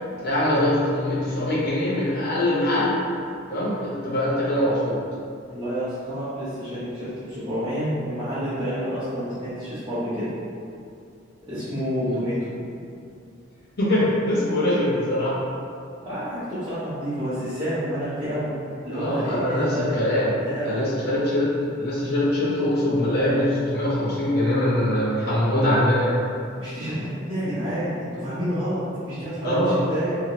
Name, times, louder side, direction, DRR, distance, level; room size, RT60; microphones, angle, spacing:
voice 1, 0.2-3.0 3.5-5.0 13.8-15.4 18.9-20.3 20.6-21.5 21.8-26.2 29.4-29.8, left 1 dB, 55° left, -8 dB, 0.9 m, -22 dB
voice 2, 5.5-10.3 11.5-12.4 16.0-18.5 18.8-20.0 20.4-20.9 26.5-30.1, equal, 25° right, -15 dB, 0.9 m, -29 dB
2.8 x 2.7 x 2.9 m, 2.4 s
head